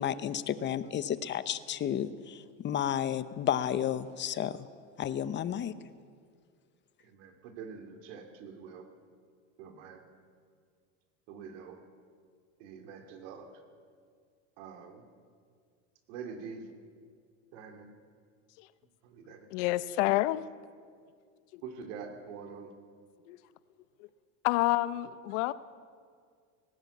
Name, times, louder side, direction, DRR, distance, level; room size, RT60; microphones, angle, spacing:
voice 1, 0.0-4.6 5.0-5.7, left 10 dB, 30° left, 14 dB, 0.9 m, -32 dB
voice 2, 7.0-8.9 9.6-10.0 11.3-11.8 12.6-13.5 14.6-15.0 16.1-16.7 17.5-17.9 19.0-19.5 21.6-22.7, right 6 dB, 75° right, 6 dB, 2.9 m, -45 dB
voice 3, 19.5-20.5 23.3-23.4 24.4-25.5, left 17 dB, 70° left, 16 dB, 0.9 m, -28 dB
19.0 x 16.5 x 8.5 m, 2.1 s
supercardioid pair, 130°, 36 cm